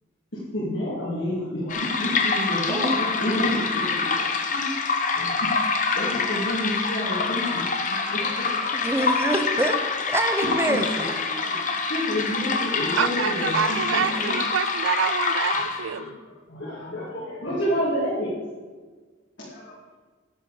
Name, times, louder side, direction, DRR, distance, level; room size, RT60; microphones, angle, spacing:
voice 1, 0.3-4.7 5.1-5.5 5.9-8.7 10.4-11.0 11.3-11.6 11.9-14.3 15.5-15.7 15.9-16.1 16.5-18.4 19.4-19.7, equal, 60° left, -8 dB, 2.5 m, -30 dB
sound 1, 1.7-16.0, left 4 dB, 40° left, 0.9 m, -26 dB
voice 2, 8.7-11.1, right 1 dB, 10° right, 6 dB, 0.8 m, -26 dB
voice 3, 13.0-16.2, right 8 dB, 70° right, 18 dB, 0.3 m, -27 dB
10.0 x 8.8 x 5.0 m, 1.4 s
head